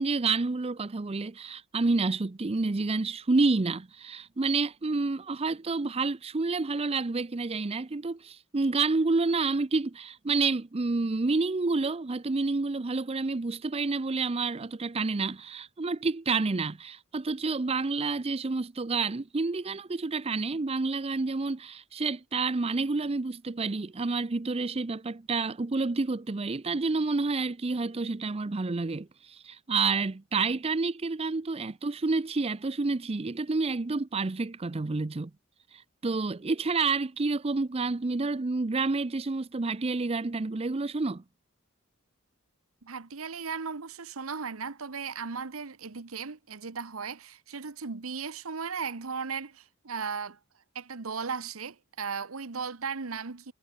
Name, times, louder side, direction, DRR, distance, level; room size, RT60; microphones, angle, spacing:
voice 1, 0.0-35.3 35.7-41.2, right 3 dB, 30° right, 0.5 m, -29 dB
voice 2, 42.8-50.4 50.7-53.5, right 5 dB, 80° right, 1.1 m, -36 dB
head